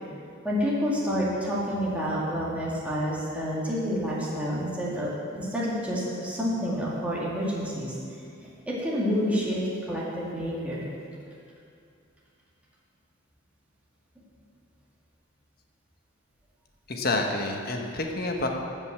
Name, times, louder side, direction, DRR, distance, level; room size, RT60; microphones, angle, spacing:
voice 1, 0.4-7.9 8.7-9.6 9.9-10.9, equal, 5° right, -7 dB, 2.1 m, -28 dB
voice 2, 16.9-18.5, left 2 dB, 45° left, 2 dB, 1.2 m, -28 dB
14.5 x 5.4 x 7.3 m, 2.4 s
head